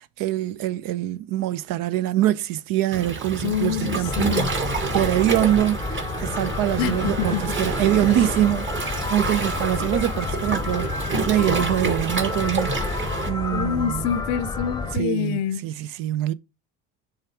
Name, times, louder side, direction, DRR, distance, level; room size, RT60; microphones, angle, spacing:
voice 1, 0.0-4.4 4.9-14.2 14.9-16.3, right 13 dB, 60° right, 0.7 m, -24 dB
Waves surf, 2.9-13.3, right 3 dB, 30° right, 1.6 m, -28 dB
voice 2, 3.4-4.5 6.8-7.4 13.5-15.6, left 9 dB, 80° left, 0.6 m, -26 dB
sound 1, 4.0-15.0, left 4 dB, 10° left, 0.8 m, -30 dB
6.5 x 3.6 x 4.6 m
supercardioid pair, 80°, 37 cm